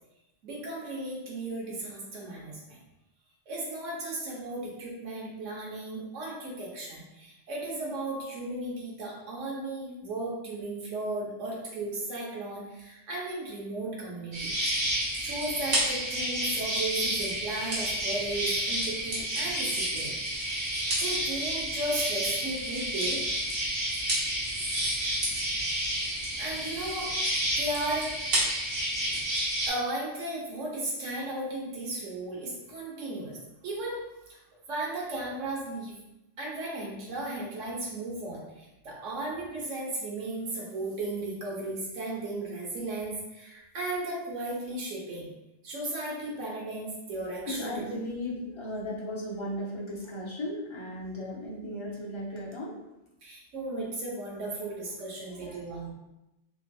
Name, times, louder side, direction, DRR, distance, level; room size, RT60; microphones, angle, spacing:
voice 1, 0.4-2.8 3.5-14.5 15.2-20.5 21.0-23.2 26.4-27.1 27.6-28.4 29.7-33.4 33.6-34.0 34.3-34.4 34.7-35.9 36.4-45.3 45.6-47.8 53.2-55.9, right 2 dB, 80° right, -4 dB, 1.3 m, -35 dB
sound 1, 14.3-29.7, right 1 dB, 60° right, 1.2 m, -30 dB
voice 2, 47.5-52.7 55.4-55.9, left 1 dB, 40° left, -4 dB, 0.4 m, -36 dB
3.5 x 2.6 x 2.3 m, 0.93 s
omnidirectional pair, 1.3 m